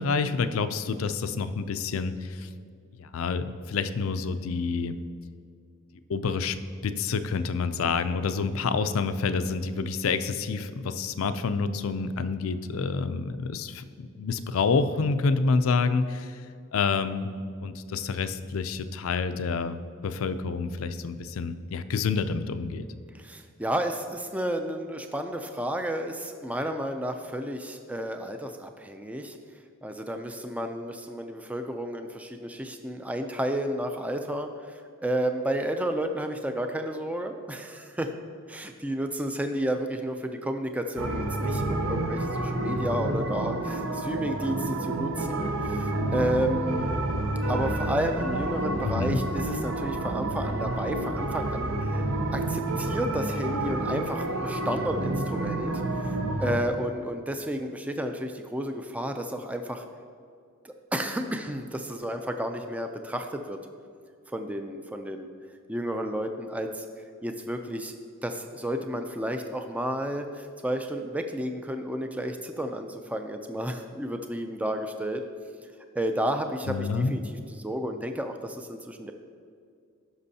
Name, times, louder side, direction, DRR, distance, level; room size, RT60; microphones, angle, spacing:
voice 1, 0.0-2.5 3.0-5.0 6.1-6.6 6.8-16.4 16.7-17.3 17.6-22.9 48.8-49.2 76.7-77.1, left 4 dB, 75° left, 11 dB, 0.4 m, -28 dB
voice 2, 23.1-29.4 29.8-38.1 38.5-47.0 47.5-52.0 52.3-55.7 56.4-59.8 60.6-63.6 64.3-65.3 65.7-66.9 67.2-68.0 68.2-75.2 76.0-79.1, right 1 dB, 5° right, 6 dB, 0.4 m, -31 dB
sound 1, 41.0-56.6, right 2 dB, 70° right, 0.7 m, -29 dB
15.5 x 6.1 x 2.8 m, 2.3 s
head